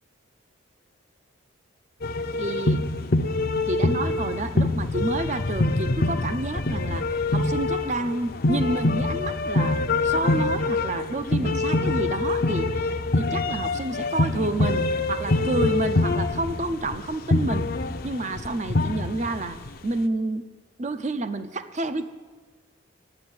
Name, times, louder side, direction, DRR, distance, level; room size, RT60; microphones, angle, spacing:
sound 1, 2.0-19.8, left 2 dB, 45° left, 0.6 m, -25 dB
voice 1, 2.4-2.8 3.7-17.7 18.0-20.5 20.8-22.1, right 2 dB, 35° right, 11 dB, 0.6 m, -29 dB
12.0 x 9.1 x 9.6 m, 1.4 s
head